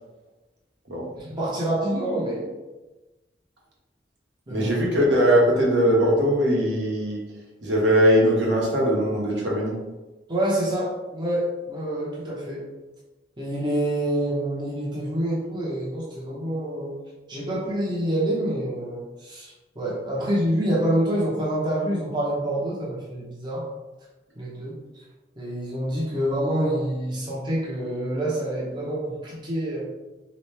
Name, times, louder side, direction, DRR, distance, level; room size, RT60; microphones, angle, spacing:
voice 1, 1.2-2.5 4.5-4.7 10.3-12.7 13.4-17.0 17.3-23.7 24.4-24.8 25.4-29.8, right 1 dB, 25° right, -6 dB, 0.7 m, -27 dB
voice 2, 4.5-7.2 7.6-9.7, equal, 75° right, -4 dB, 1.1 m, -20 dB
3.6 x 2.9 x 3.3 m, 1.1 s
head